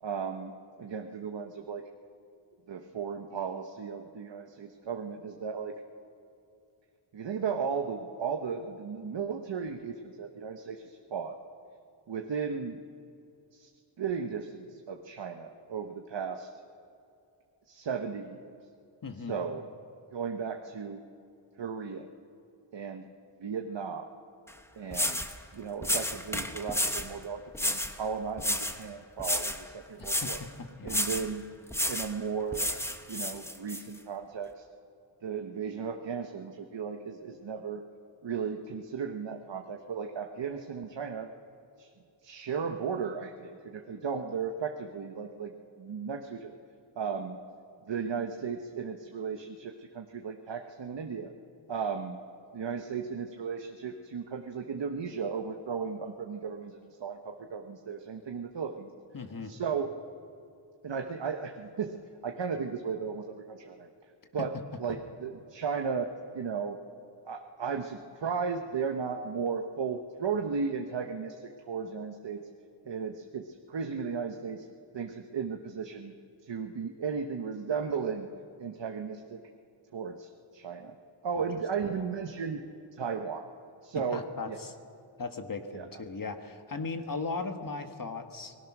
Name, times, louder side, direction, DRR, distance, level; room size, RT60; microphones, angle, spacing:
voice 1, 0.0-1.9 2.7-5.7 7.1-11.3 12.1-12.8 13.5-13.7 14.0-16.5 17.7-18.5 19.3-19.6 20.1-21.0 21.6-22.1 22.7-23.1 23.4-24.1 24.7-30.4 30.8-31.5 31.9-32.7 33.1-34.6 35.2-37.8 38.2-41.3 41.8-41.9 42.2-45.5 45.8-46.5 47.0-47.4 47.9-51.3 51.7-52.2 52.5-58.9 59.4-59.9 60.8-62.0 62.2-63.9 64.3-66.1 66.3-66.8 67.3-72.5 72.8-74.6 74.9-76.1 76.4-78.3 78.6-79.4 79.9-81.0 81.2-82.6 83.0-83.5 83.8-84.6 85.7-85.9, right 6 dB, 60° right, 4 dB, 1.2 m, -35 dB
voice 2, 19.0-19.4 30.2-31.0 59.1-59.5 64.4-64.5 81.9-82.0 83.9-84.7 85.2-88.5, left 4 dB, 40° left, 6 dB, 1.5 m, -37 dB
sound 1, 24.5-24.6 24.9-25.3 25.8-27.1 27.5-28.0 28.4-28.8 29.2-29.6 30.0-30.4 30.9-31.3 31.7-32.1 32.5-33.8, left 1 dB, 5° left, 1.1 m, -31 dB
29.5 x 20.0 x 6.1 m, 2.6 s
wide cardioid pair, 150°, 50 cm